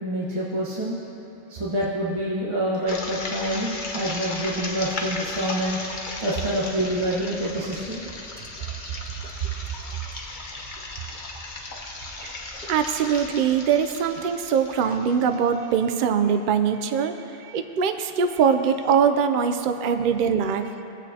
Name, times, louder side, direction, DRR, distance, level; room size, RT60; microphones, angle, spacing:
voice 1, 0.0-1.0 1.5-5.8 6.2-8.0, right 1 dB, 30° right, -7 dB, 1.2 m, -27 dB
sound 1, 2.9-15.7, left 2 dB, 50° left, 1.0 m, -36 dB
voice 2, 12.7-20.7, right 7 dB, 60° right, 7 dB, 0.6 m, -22 dB
17.5 x 8.3 x 2.8 m, 3.0 s
omnidirectional pair, 1.1 m